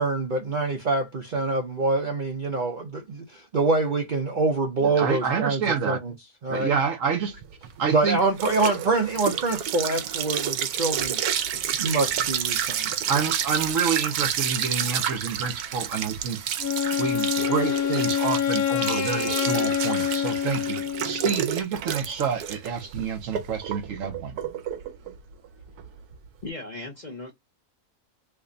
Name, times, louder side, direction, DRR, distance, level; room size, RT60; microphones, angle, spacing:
voice 1, 0.0-6.1 6.4-6.7 7.9-11.2 11.8-12.9, right 3 dB, 45° right, 0.6 m, -25 dB
voice 2, 4.8-6.0 6.5-7.4 7.8-8.2 13.1-16.4 17.0-20.8 21.0-24.4, right 6 dB, 65° right, 1.2 m, -28 dB
sound 1, 7.4-26.4, right 9 dB, 80° right, 1.1 m, -30 dB
Wind instrument woodwind instrument, 16.6-21.4, left 9 dB, 80° left, 1.3 m, -26 dB
voice 3, 26.4-27.3, left 2 dB, 35° left, 0.8 m, -37 dB
3.3 x 2.2 x 3.8 m
omnidirectional pair, 1.6 m